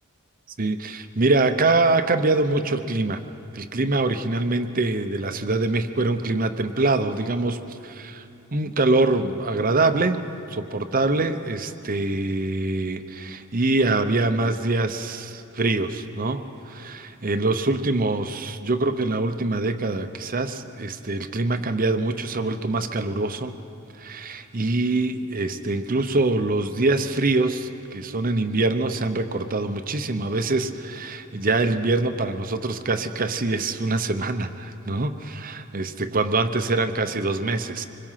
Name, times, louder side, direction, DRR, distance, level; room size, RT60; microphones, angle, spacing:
voice 1, 0.6-3.2 3.5-8.3 8.5-23.5 24.0-37.8, right 2 dB, 40° right, 9 dB, 0.9 m, -24 dB
25.5 x 21.5 x 5.8 m, 2.7 s
head